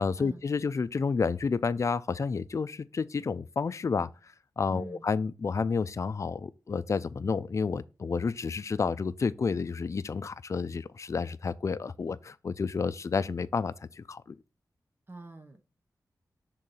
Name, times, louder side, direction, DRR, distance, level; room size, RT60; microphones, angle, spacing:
voice 1, 0.0-4.1 4.6-14.3, left 5 dB, 45° left, 0.4 m, -30 dB
voice 2, 4.7-5.1 15.1-15.6, right 2 dB, 30° right, 0.8 m, -44 dB
6.4 x 3.8 x 4.1 m
wide cardioid pair, 105°, 7 cm